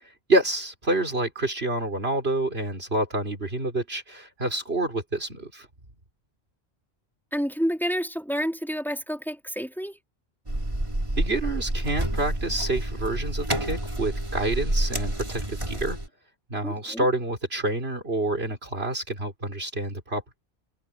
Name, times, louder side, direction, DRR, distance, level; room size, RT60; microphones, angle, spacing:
voice 1, 0.0-5.7 11.2-16.0 16.5-20.4, right 2 dB, 75° right, 4.3 m, -28 dB
voice 2, 7.3-10.0 16.6-17.1, equal, ahead, 3.5 m, -29 dB
sound 1, 10.5-16.1, right 1 dB, 30° right, 3.3 m, -29 dB
omnidirectional pair, 1.1 m